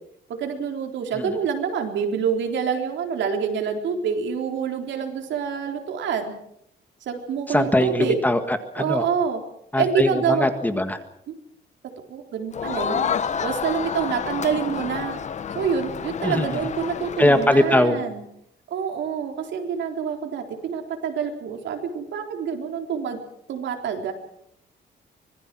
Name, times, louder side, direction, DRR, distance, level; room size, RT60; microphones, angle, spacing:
voice 1, 0.4-6.3 7.0-8.2 8.8-9.4 9.8-10.5 11.3-11.4 12.1-15.2 15.5-18.2 18.7-23.2 23.5-24.1, right 7 dB, 80° right, 3 dB, 4.0 m, -27 dB
voice 2, 7.5-9.1 9.7-11.0 16.2-16.6 17.2-18.0, left 1 dB, 10° left, 8 dB, 1.7 m, -21 dB
Crowd, 12.5-17.9, left 7 dB, 40° left, 1.0 m, -29 dB
25.5 x 20.5 x 6.2 m, 0.76 s
cardioid pair, 150°, 19 cm